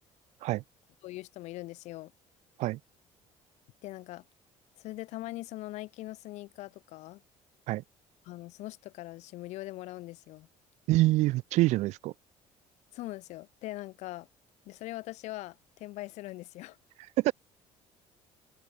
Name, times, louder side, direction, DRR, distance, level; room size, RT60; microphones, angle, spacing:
voice 1, 1.0-2.1 3.8-4.2 4.8-7.2 8.2-10.5 12.9-14.3 14.6-16.8, left 18 dB, 65° left, 2.7 m, -41 dB
voice 2, 10.9-12.1 17.2-17.3, right 18 dB, 65° right, 1.2 m, -25 dB
cardioid pair, 165°, 13 cm